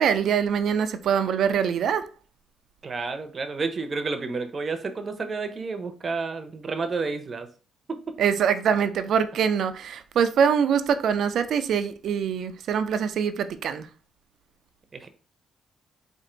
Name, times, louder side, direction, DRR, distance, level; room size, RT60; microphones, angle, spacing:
voice 1, 0.0-2.1 8.2-13.9, right 7 dB, 70° right, 0.5 m, -24 dB
voice 2, 2.8-7.5 7.9-8.1 14.9-15.1, right 4 dB, 40° right, 0.7 m, -30 dB
4.4 x 2.6 x 3.8 m
cardioid pair, 90°, 0 cm